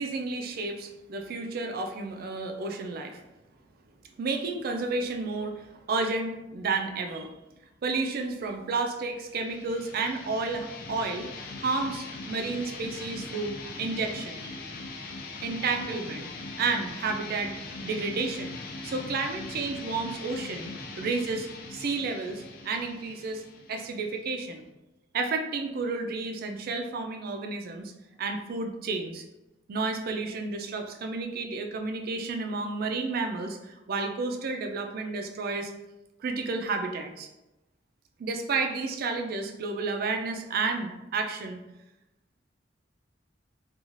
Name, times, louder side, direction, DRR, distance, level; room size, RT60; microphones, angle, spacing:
voice 1, 0.0-3.2 4.2-7.3 7.8-11.3 11.6-14.6 15.4-16.3 16.6-17.5 17.8-18.6 18.8-20.7 21.0-23.4 23.7-24.6 25.1-27.9 28.2-29.2 29.7-35.7 36.2-37.3 38.2-41.6, right 3 dB, 55° right, 5 dB, 0.4 m, -31 dB
sound 1, 9.3-24.7, left 3 dB, 55° left, 0.4 m, -41 dB
2.5 x 2.3 x 3.0 m, 0.97 s
head